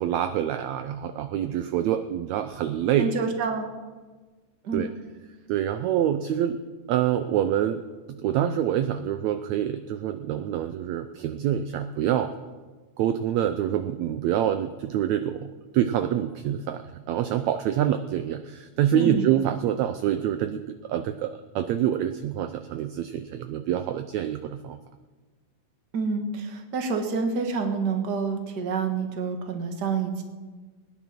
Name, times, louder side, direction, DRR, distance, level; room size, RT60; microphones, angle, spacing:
voice 1, 0.0-3.1 4.7-4.9 5.5-6.6 6.9-12.3 13.0-24.8, right 10 dB, 75° right, 9 dB, 1.7 m, -26 dB
voice 2, 3.0-3.7 4.6-4.9 18.9-19.3 25.9-30.2, right 4 dB, 40° right, 4 dB, 1.7 m, -28 dB
20.5 x 10.0 x 6.0 m, 1.3 s
omnidirectional pair, 3.6 m